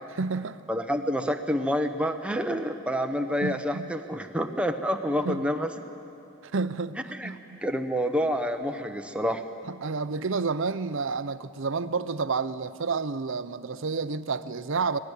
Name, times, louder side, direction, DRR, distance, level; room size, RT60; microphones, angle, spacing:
voice 1, 0.2-0.6 3.4-3.9 5.2-5.4 6.5-7.0 7.2-7.6 9.7-15.0, right 4 dB, 60° right, 14 dB, 0.7 m, -30 dB
voice 2, 0.7-5.7 7.1-7.3 7.6-9.4, equal, 5° right, 5 dB, 1.0 m, -28 dB
24.5 x 19.0 x 8.3 m, 2.8 s
head